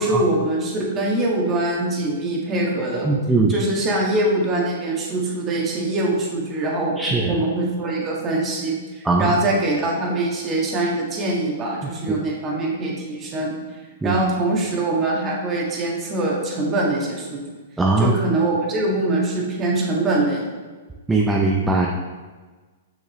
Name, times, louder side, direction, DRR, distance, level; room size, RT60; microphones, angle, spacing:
voice 1, 0.0-3.1 3.5-13.6 14.0-17.4 18.0-20.4, right 2 dB, 25° right, -2 dB, 1.7 m, -23 dB
voice 2, 3.0-3.6 7.0-7.3 9.0-9.3 14.0-14.1 17.8-18.1 21.1-21.9, right 3 dB, 10° right, -1 dB, 0.6 m, -19 dB
6.3 x 6.2 x 3.1 m, 1.4 s
hypercardioid pair, 130°, 0 cm